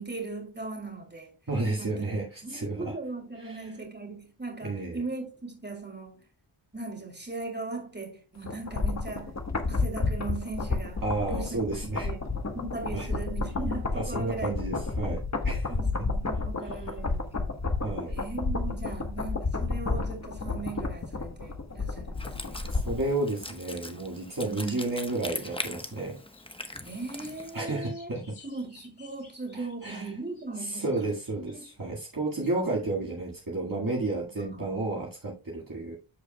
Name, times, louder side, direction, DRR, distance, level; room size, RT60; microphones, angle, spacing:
voice 1, 0.0-1.3 1.8-2.1 2.4-6.2 6.7-9.4 9.7-11.6 12.0-12.2 12.5-14.6 15.7-17.7 18.1-22.7 24.4-24.9 26.8-28.1 28.4-30.9 31.5-31.6 34.4-34.7, right 3 dB, 20° right, 3.1 m, -38 dB
voice 2, 1.5-2.9 3.4-3.7 4.6-5.0 11.0-12.1 12.9-13.1 13.9-15.7 17.8-18.2 22.7-26.2 27.5-28.2 29.5-30.2 30.6-36.0, right 2 dB, 40° right, 1.9 m, -32 dB
sound 1, 8.4-23.1 23.4-23.5, left 3 dB, 35° left, 1.2 m, -31 dB
Wind instrument woodwind instrument, 22.2-27.6, left 1 dB, 10° left, 1.0 m, -41 dB
sound 2, 24.3-24.6 25.0-25.7 26.0-31.8 32.4-32.5, left 4 dB, 55° left, 4.6 m, -56 dB
14.0 x 4.8 x 2.2 m
wide cardioid pair, 70°, 49 cm